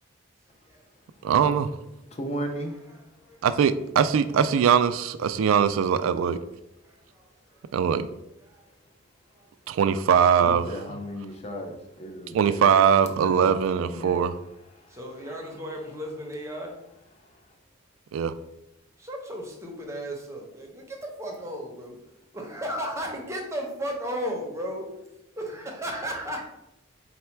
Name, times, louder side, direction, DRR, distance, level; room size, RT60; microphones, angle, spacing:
voice 1, 1.2-1.7 3.4-6.4 7.7-8.1 9.7-11.0 12.3-14.4 18.1-18.3, right 7 dB, 90° right, 12 dB, 0.3 m, -21 dB
voice 2, 2.1-2.8 10.4-14.2, equal, 30° left, 4 dB, 0.5 m, -36 dB
voice 3, 2.6-3.4 6.8-7.6 8.4-8.6 9.4-9.5 14.9-16.8 19.0-22.0 22.3-24.9 25.4-26.4, equal, 15° right, 0 dB, 0.7 m, -35 dB
4.1 x 2.2 x 4.4 m, 0.87 s
head